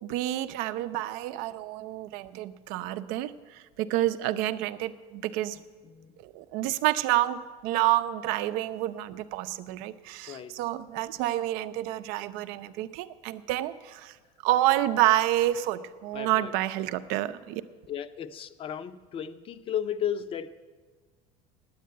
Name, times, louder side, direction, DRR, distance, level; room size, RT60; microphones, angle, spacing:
voice 1, 0.0-5.6 6.2-14.2 14.4-17.6, right 14 dB, 70° right, 12 dB, 0.6 m, -28 dB
voice 2, 10.3-10.6 16.1-16.5 17.9-20.5, left 9 dB, 35° left, 12 dB, 0.6 m, -34 dB
9.5 x 8.4 x 9.3 m, 1.4 s
cardioid pair, 135°, 15 cm